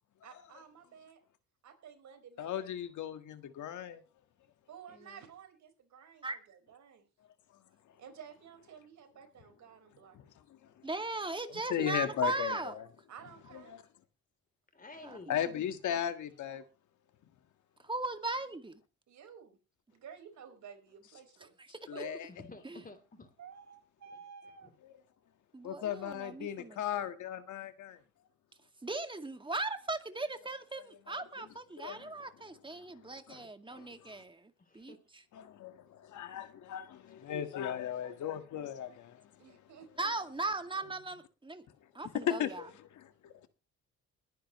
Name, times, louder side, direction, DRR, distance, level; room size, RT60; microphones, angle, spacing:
voice 1, 0.2-1.2 1.6-2.7 4.7-7.0 8.0-10.2 13.1-13.7 19.1-19.6 19.9-21.5 21.9-22.2 23.4-24.7 39.4-40.1, right 7 dB, 70° right, 4.9 m, -52 dB
voice 2, 2.4-4.0 10.1-10.2 11.7-12.9 13.5-13.8 15.3-16.7 21.9-22.3 25.6-28.0 30.7-31.2 31.8-32.2 33.3-33.4 33.7-34.2 35.3-39.6 42.1-43.5, left 10 dB, 75° left, 1.7 m, -37 dB
voice 3, 4.9-5.3 14.7-15.4 22.3-23.3 24.6-24.7 33.3-33.5 34.6-35.0 40.8-41.2, left 3 dB, 30° left, 3.4 m, -52 dB
voice 4, 10.8-12.7 15.0-15.4 17.8-18.8 21.7-22.0 22.6-22.8 25.5-26.8 28.8-35.0 40.0-41.7 41.9-42.6, right 2 dB, 15° right, 2.1 m, -38 dB
21.5 x 10.0 x 3.1 m
cardioid pair, 90°, 30 cm